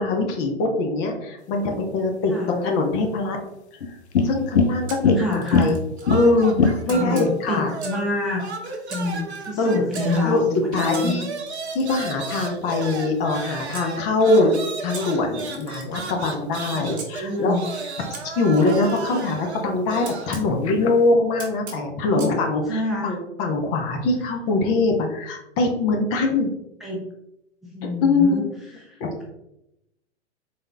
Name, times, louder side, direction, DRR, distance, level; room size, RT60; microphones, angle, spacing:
voice 1, 0.0-3.4 4.2-5.7 6.1-7.7 9.6-9.7 10.2-10.4 10.7-11.3 11.7-14.6 14.8-17.5 18.2-26.5 28.0-28.4 29.0-29.1, left 3 dB, 30° left, 3 dB, 0.8 m, -22 dB
sound 1, 1.4-21.2, left 4 dB, 65° left, 0.7 m, -30 dB
Camera, 4.9-6.1 6.9-8.1 8.9-10.0 10.9-13.9 14.9-17.1 18.1-20.5 21.4-22.4, right 4 dB, 25° right, 1.1 m, -42 dB
voice 2, 5.1-5.7 6.9-8.4 8.9-11.2 16.7-17.6 22.0-22.3 22.6-23.1 26.8-27.0 27.7-29.0, left 2 dB, ahead, -4 dB, 0.7 m, -27 dB
sound 2, 6.0-8.1 8.4-20.3, right 4 dB, 65° right, 0.8 m, -34 dB
4.1 x 3.5 x 3.4 m, 0.84 s
hypercardioid pair, 115°, 36 cm